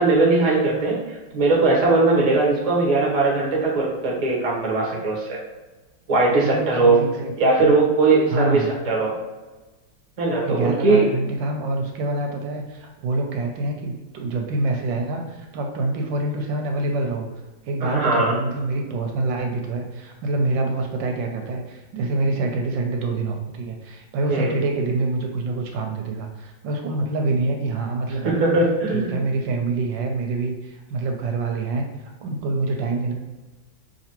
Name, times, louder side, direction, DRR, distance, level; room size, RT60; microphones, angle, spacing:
voice 1, 0.0-5.4 6.1-7.0 7.4-9.1 10.2-11.1 17.8-18.3 24.3-24.5 28.2-29.2, right 3 dB, 35° right, -3 dB, 0.6 m, -19 dB
voice 2, 6.4-7.7 8.3-8.7 10.4-17.3 17.6-28.4 28.9-33.1, right 2 dB, 75° right, 3 dB, 1.2 m, -26 dB
5.0 x 2.8 x 2.9 m, 1.2 s
omnidirectional pair, 2.2 m